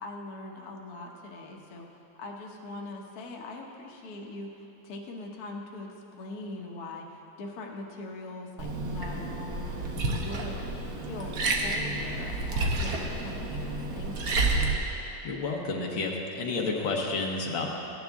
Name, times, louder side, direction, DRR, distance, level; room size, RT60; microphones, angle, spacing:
voice 1, 0.0-14.4, left 2 dB, 55° left, 0 dB, 1.3 m, -42 dB
Liquid, 8.6-14.7, right 2 dB, 55° right, 1.3 m, -30 dB
voice 2, 15.2-17.7, left 3 dB, 85° left, 0 dB, 1.9 m, -30 dB
15.0 x 9.8 x 3.5 m, 3.0 s
omnidirectional pair, 2.1 m